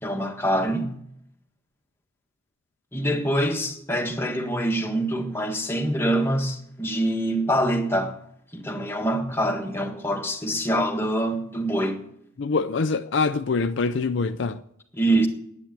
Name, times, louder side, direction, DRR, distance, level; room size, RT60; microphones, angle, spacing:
voice 1, 0.0-0.9 2.9-8.2 8.5-12.0 14.9-15.3, right 1 dB, 10° left, 1.6 m, -25 dB
voice 2, 12.4-14.6, left 4 dB, 60° left, 0.5 m, -24 dB
10.5 x 9.6 x 8.9 m
head